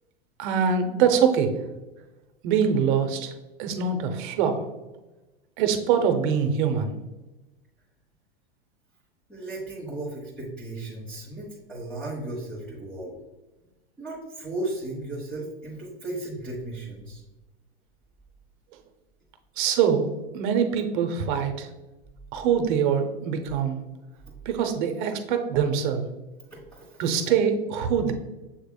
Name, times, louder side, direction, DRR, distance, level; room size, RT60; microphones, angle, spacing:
voice 1, 0.4-1.6 2.4-3.3 3.6-4.6 5.6-6.9 19.6-21.7 22.3-23.8 24.4-26.0 27.0-28.1, right 7 dB, 50° right, 7 dB, 0.8 m, -24 dB
voice 2, 9.3-13.1 14.0-17.2 25.5-25.6 26.5-27.3, right 2 dB, 5° left, -6 dB, 1.2 m, -35 dB
7.1 x 3.4 x 2.2 m, 1.1 s
hypercardioid pair, 115°, 31 cm